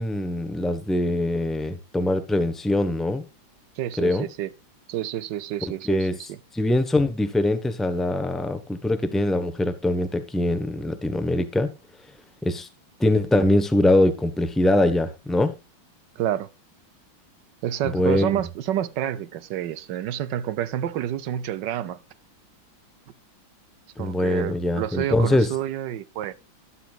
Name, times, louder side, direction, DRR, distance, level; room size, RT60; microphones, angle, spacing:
voice 1, 0.0-3.3 4.0-4.3 5.6-6.1 6.5-11.7 12.4-12.7 13.0-15.6 17.8-18.4 24.0-25.5, left 1 dB, ahead, 0.5 m, -23 dB
voice 2, 3.8-4.5 4.9-6.1 16.2-16.5 17.6-22.0 24.0-26.3, right 11 dB, 70° right, 1.3 m, -29 dB
12.5 x 11.5 x 2.4 m
omnidirectional pair, 2.1 m